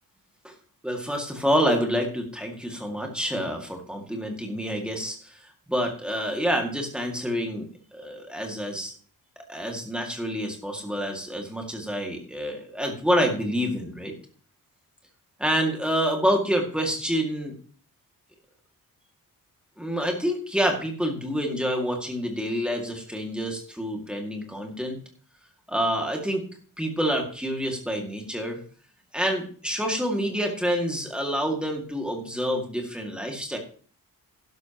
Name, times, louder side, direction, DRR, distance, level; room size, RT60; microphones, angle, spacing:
voice 1, 0.8-5.4 5.7-8.9 9.5-14.1 15.4-17.5 19.8-25.0 25.7-26.4 26.8-28.6 29.1-33.6, equal, 5° right, 1 dB, 2.1 m, -27 dB
12.0 x 11.0 x 3.0 m, 0.43 s
wide cardioid pair, 155°, 35 cm